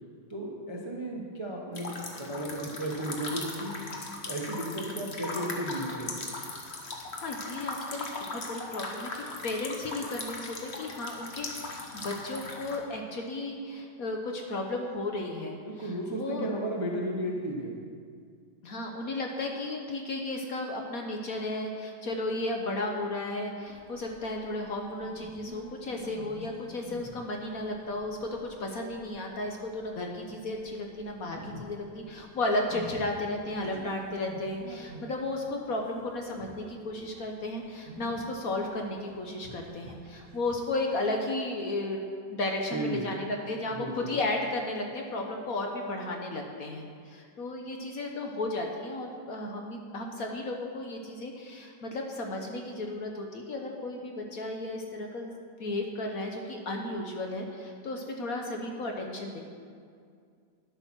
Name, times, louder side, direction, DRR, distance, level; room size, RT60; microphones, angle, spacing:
voice 1, 0.3-3.8 4.3-6.1 15.7-17.8 42.7-43.0 43.8-44.1, right 1 dB, 20° right, -2 dB, 0.8 m, -34 dB
sound 1, 1.7-12.8, left 3 dB, 40° left, 1.3 m, -39 dB
voice 2, 7.1-16.5 18.6-55.3 55.6-59.4, left 2 dB, 55° left, 2 dB, 1.2 m, -34 dB
sound 2, 23.7-40.7, right 1 dB, 65° right, 1.4 m, -48 dB
11.0 x 8.3 x 6.0 m, 2.2 s
omnidirectional pair, 2.1 m